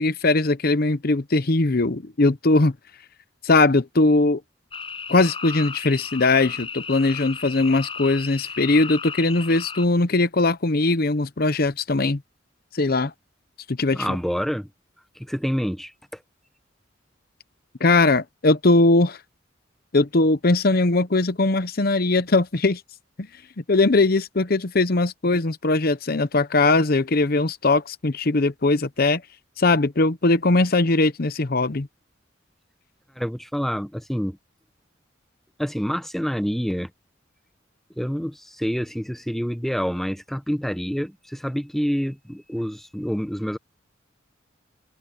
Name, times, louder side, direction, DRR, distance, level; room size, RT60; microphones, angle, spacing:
voice 1, 0.0-2.7 3.4-4.4 5.1-12.2 12.7-13.1 13.7-14.0 17.8-19.2 19.9-22.8 23.2-23.3 23.7-29.2 29.6-31.9, left 2 dB, 50° left, 0.9 m, -20 dB
sound 1, 4.7-9.9, left 5 dB, 30° left, 6.4 m, -35 dB
voice 2, 13.9-14.7 15.2-16.2 33.2-34.4 35.6-36.9 38.0-43.6, equal, ahead, 0.8 m, -27 dB
head